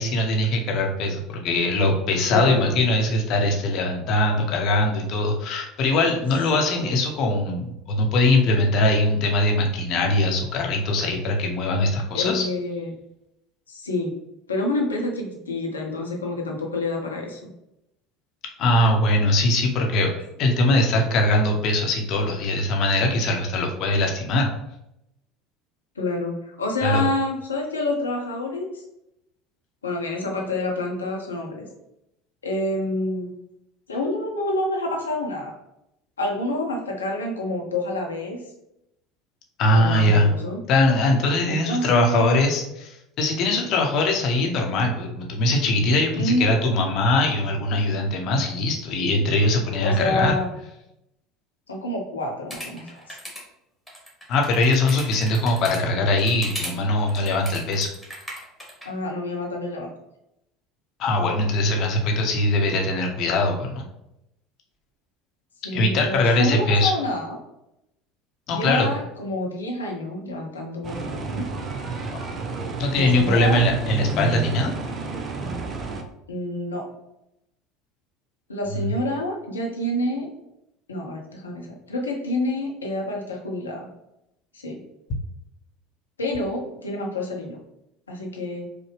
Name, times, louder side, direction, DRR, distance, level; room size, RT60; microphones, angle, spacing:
voice 1, 0.0-12.5 18.6-24.5 26.8-27.0 39.6-40.3 40.7-50.4 54.3-57.9 61.0-63.9 65.7-66.9 68.5-68.9 72.1-72.3 72.8-74.7, left 2 dB, 50° left, 1 dB, 0.8 m, -21 dB
voice 2, 2.3-2.8 6.5-6.9 12.1-12.9 13.7-14.2 14.5-17.4 26.0-28.8 29.8-31.7 32.4-33.3 33.9-35.5 36.2-38.4 39.7-40.6 41.5-42.4 46.1-46.5 49.8-50.5 51.7-53.2 58.8-59.9 65.6-67.4 68.5-71.5 72.9-73.6 76.3-76.9 78.5-80.3 80.9-83.9 84.5-84.8 86.2-87.6 88.1-88.7, left 1 dB, 80° left, 0 dB, 0.7 m, -28 dB
sound 1, 52.5-53.4 53.9-55.8 56.2-56.7 57.0-58.9, equal, ahead, 1.5 m, -36 dB
sound 2, 70.8-76.0, right 3 dB, 35° right, 0.5 m, -30 dB
4.9 x 2.1 x 3.2 m, 0.85 s
figure-of-eight pair, 70°, 0 cm